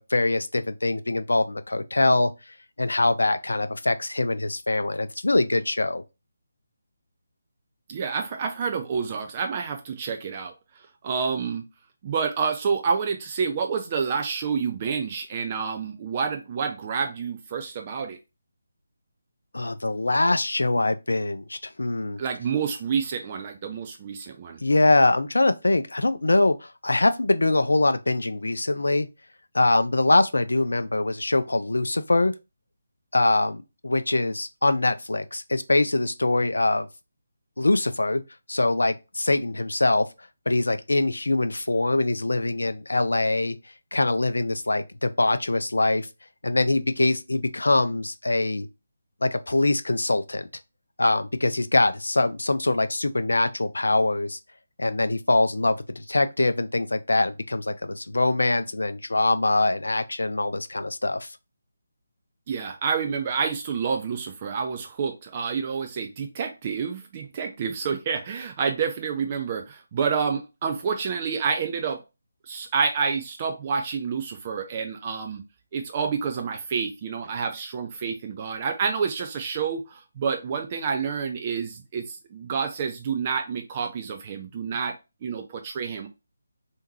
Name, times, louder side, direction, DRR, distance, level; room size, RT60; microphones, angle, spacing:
voice 1, 0.0-2.3 2.8-6.0 19.5-22.2 24.6-29.1 29.5-32.3 33.1-36.9 37.6-38.2 38.5-40.1 40.5-43.6 43.9-46.1 46.4-48.7 49.2-50.5 51.0-54.4 54.8-61.4, left 2 dB, 65° left, 0.4 m, -23 dB
voice 2, 7.9-11.6 12.0-18.2 22.2-24.6 62.5-72.0 72.4-75.4 75.7-86.1, right 6 dB, 25° right, 0.3 m, -28 dB
3.5 x 2.7 x 2.8 m
figure-of-eight pair, 150°, 0 cm